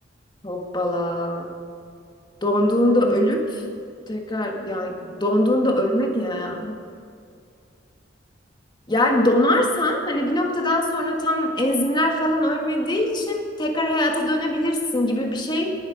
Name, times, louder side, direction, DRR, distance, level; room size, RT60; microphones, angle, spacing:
voice 1, 0.4-1.5 2.4-3.6 4.1-6.7 8.9-15.7, left 1 dB, 25° left, 2 dB, 1.8 m, -22 dB
18.5 x 12.0 x 5.2 m, 2.4 s
head